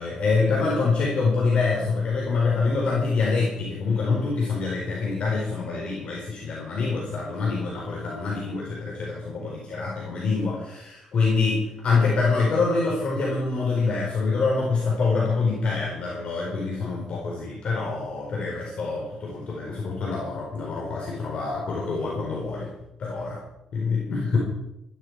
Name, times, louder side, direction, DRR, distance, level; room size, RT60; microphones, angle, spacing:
voice 1, 0.0-22.7 23.0-23.4 23.7-24.4, left 4 dB, 55° left, -2 dB, 4.4 m, -25 dB
14.5 x 13.5 x 4.8 m, 0.88 s
cardioid pair, 90°, 2 cm